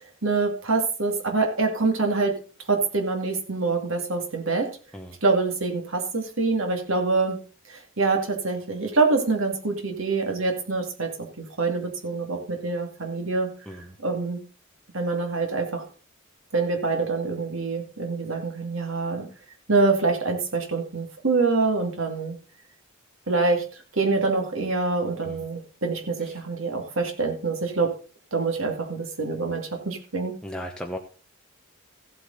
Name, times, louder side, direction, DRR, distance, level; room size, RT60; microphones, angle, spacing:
voice 1, 0.2-2.3 2.7-4.7 5.2-7.4 7.7-11.1 11.4-13.5 14.0-14.4 14.9-15.8 16.5-19.3 19.7-22.4 23.3-23.7 24.0-27.9 28.3-30.3, right 3 dB, 65° right, 3 dB, 2.4 m, -25 dB
voice 2, 30.4-31.0, equal, 5° left, 2 dB, 0.9 m, -35 dB
15.0 x 8.2 x 4.0 m, 0.38 s
head